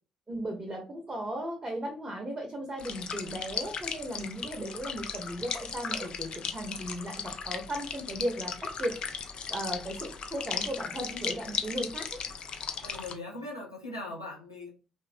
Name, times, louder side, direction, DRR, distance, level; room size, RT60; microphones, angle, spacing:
voice 1, 0.3-8.5 8.8-8.9 9.5-12.2, right 1 dB, 25° right, 0.8 m, -36 dB
sound 1, 2.8-13.1, left 6 dB, 45° left, 0.4 m, -37 dB
voice 2, 12.8-14.7, left 2 dB, 90° left, 0.6 m, -40 dB
3.0 x 2.1 x 2.5 m
figure-of-eight pair, 45°, 2 cm